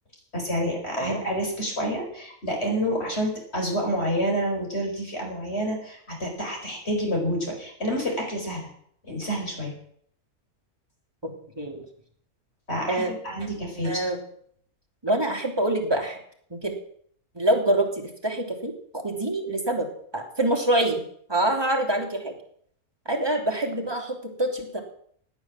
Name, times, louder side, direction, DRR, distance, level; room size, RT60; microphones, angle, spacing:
voice 1, 0.3-8.7 9.0-9.7 12.7-13.9, equal, 45° left, 1 dB, 5.0 m, -28 dB
voice 2, 11.2-11.8 12.9-13.1 13.8-14.2 15.0-16.2 16.5-16.7 17.3-19.9 20.1-21.0 21.3-22.3 23.0-24.8, right 1 dB, 15° right, 1 dB, 2.9 m, -25 dB
16.5 x 9.6 x 7.4 m, 0.64 s
omnidirectional pair, 1.6 m